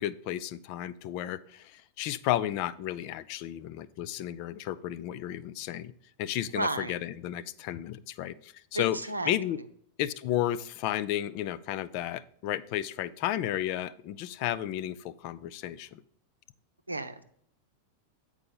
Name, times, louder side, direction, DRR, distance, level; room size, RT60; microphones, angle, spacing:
voice 1, 0.0-5.9 6.2-9.0 9.3-9.6 10.0-16.0, left 12 dB, 45° left, 15 dB, 0.4 m, -33 dB
voice 2, 6.5-6.9 8.7-9.3 16.9-17.2, right 2 dB, 80° right, 9 dB, 0.6 m, -32 dB
8.7 x 4.8 x 5.3 m, 0.64 s
figure-of-eight pair, 90°, 0 cm